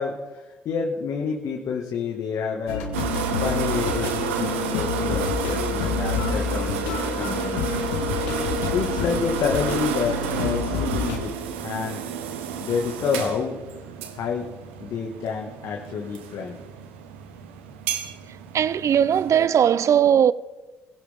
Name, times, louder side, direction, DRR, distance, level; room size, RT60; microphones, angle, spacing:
voice 1, 0.0-2.9 3.4-7.7 8.7-11.3 11.6-12.0 12.6-13.6 14.1-14.5 14.8-16.6, left 6 dB, 60° left, 1.9 m, -28 dB
sound 1, 2.7-11.2, left 6 dB, 85° left, 1.6 m, -28 dB
sound 2, 2.9-19.5, right 8 dB, 85° right, 1.3 m, -31 dB
voice 2, 18.5-20.3, right 9 dB, 50° right, 0.6 m, -18 dB
22.5 x 16.0 x 3.7 m
hypercardioid pair, 50°, 6 cm